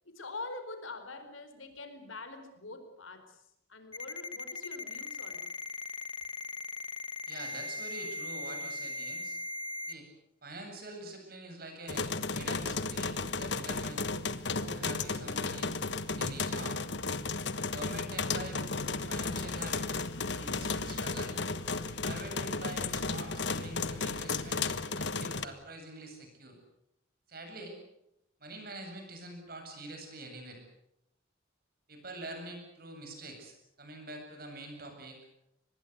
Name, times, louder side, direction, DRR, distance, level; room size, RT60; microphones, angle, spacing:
voice 1, 0.0-3.4 3.7-5.5, left 3 dB, 85° left, 8 dB, 4.6 m, -44 dB
Ringtone, 3.9-9.9, left 2 dB, 25° left, 1.0 m, -39 dB
voice 2, 7.3-9.4 9.9-10.1 10.4-14.1 14.5-16.8 17.6-20.0 20.3-21.5 21.8-26.6 27.3-27.8 28.4-30.6 31.9-35.2, right 2 dB, 50° right, 4 dB, 7.9 m, -45 dB
sound 1, 11.9-25.5, left 4 dB, 60° left, 1.3 m, -34 dB
25.0 x 20.5 x 8.3 m, 0.83 s
head